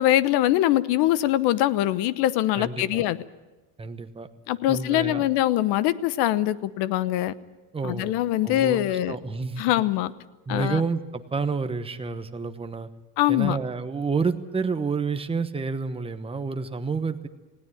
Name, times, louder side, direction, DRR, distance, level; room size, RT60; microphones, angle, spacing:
voice 1, 0.0-3.2 4.5-7.3 7.8-9.2 9.6-10.1 10.5-10.8 13.2-13.6, left 14 dB, 50° left, 16 dB, 1.1 m, -23 dB
voice 2, 2.6-3.0 3.8-4.3 4.7-5.2 7.7-8.1 8.4-8.8 9.1-9.6 10.5-12.9 13.3-17.3, right 4 dB, 10° right, 8 dB, 1.0 m, -29 dB
19.5 x 17.5 x 9.2 m, 1.1 s
supercardioid pair, 145°, 50 cm